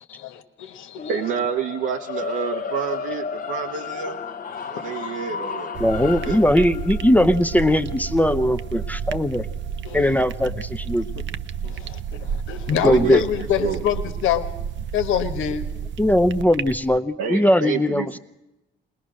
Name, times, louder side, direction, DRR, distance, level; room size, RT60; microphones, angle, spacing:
voice 1, 0.1-1.2 4.5-5.0 9.8-10.2 11.6-14.5 14.9-15.7, left 9 dB, 85° left, 8 dB, 1.5 m, -26 dB
sound 1, 1.0-11.2, left 6 dB, 45° left, 0.9 m, -34 dB
voice 2, 1.1-4.2 4.7-5.7 6.1-6.4 12.1-12.2 12.8-13.2 13.6-13.8 17.2-18.2, right 7 dB, 90° right, 1 dB, 1.2 m, -28 dB
sound 2, 5.7-17.0, right 7 dB, 70° right, 0.7 m, -31 dB
voice 3, 5.8-9.5 9.9-11.1 12.8-13.2 16.0-18.0, left 1 dB, 10° left, 10 dB, 0.6 m, -19 dB
21.0 x 20.0 x 6.3 m, 0.95 s
cardioid pair, 90°, 20 cm